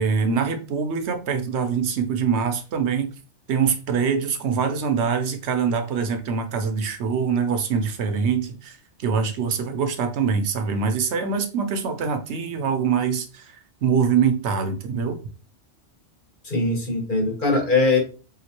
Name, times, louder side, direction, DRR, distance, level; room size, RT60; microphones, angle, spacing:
voice 1, 0.0-3.1 3.5-15.2, right 6 dB, 75° right, 7 dB, 0.9 m, -24 dB
voice 2, 16.4-18.0, left 3 dB, 45° left, 0 dB, 1.3 m, -21 dB
3.5 x 2.8 x 2.9 m, 0.35 s
omnidirectional pair, 1.2 m